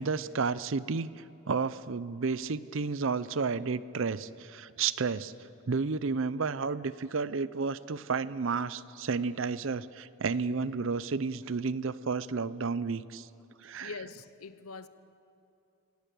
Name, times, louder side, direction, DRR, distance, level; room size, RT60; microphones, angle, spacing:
voice 1, 0.0-13.3 13.6-13.9, right 4 dB, 60° right, 17 dB, 0.6 m, -32 dB
voice 2, 13.8-14.9, left 4 dB, 85° left, 13 dB, 0.9 m, -43 dB
25.0 x 18.5 x 6.9 m, 2.6 s
head